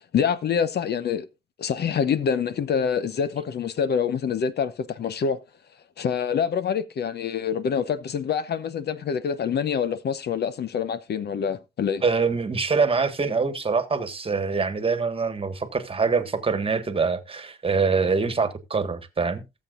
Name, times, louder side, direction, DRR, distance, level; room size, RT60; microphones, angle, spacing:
voice 1, 0.1-1.3 1.6-5.4 6.0-12.0, left 7 dB, 55° left, 0.8 m, -26 dB
voice 2, 12.0-19.4, right 4 dB, 30° right, 1.6 m, -24 dB
18.0 x 7.4 x 2.5 m
cardioid pair, 90°, 20 cm